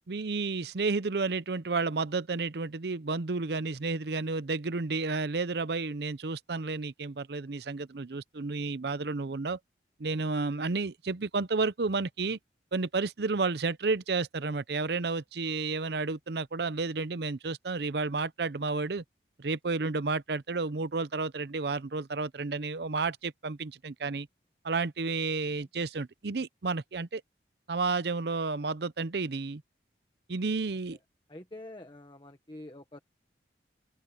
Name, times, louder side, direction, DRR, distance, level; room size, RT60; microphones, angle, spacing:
voice 1, 0.1-9.6 10.0-12.4 12.7-19.0 19.4-24.3 24.6-27.2 27.7-29.6 30.3-31.0, right 3 dB, 65° right, 0.6 m, -31 dB
voice 2, 31.3-33.0, left 1 dB, 25° left, 1.3 m, -46 dB
open air
head